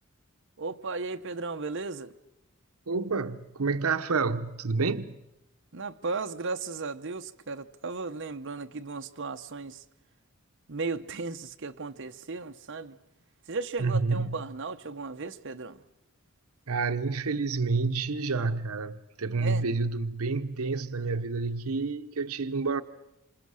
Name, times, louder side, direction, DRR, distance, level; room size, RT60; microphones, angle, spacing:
voice 1, 0.6-2.1 5.7-9.8 10.7-13.0 13.5-15.8 19.4-19.6, right 3 dB, 55° right, 0.9 m, -35 dB
voice 2, 2.9-5.2 13.8-14.4 16.7-22.8, right 4 dB, 85° right, 0.8 m, -29 dB
27.5 x 26.5 x 6.4 m
head